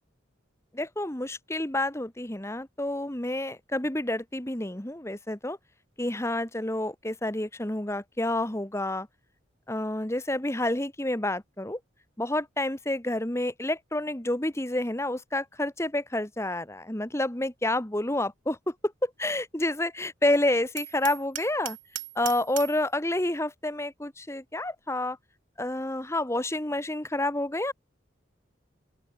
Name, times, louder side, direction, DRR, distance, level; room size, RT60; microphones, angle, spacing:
voice 1, 0.7-5.6 6.0-9.1 9.7-11.8 12.2-18.7 19.0-21.8 22.2-25.2 25.6-27.7, left 1 dB, 15° left, 1.4 m, -29 dB
Hammer, 20.8-22.9, right 14 dB, 80° right, 1.5 m, -38 dB
open air
head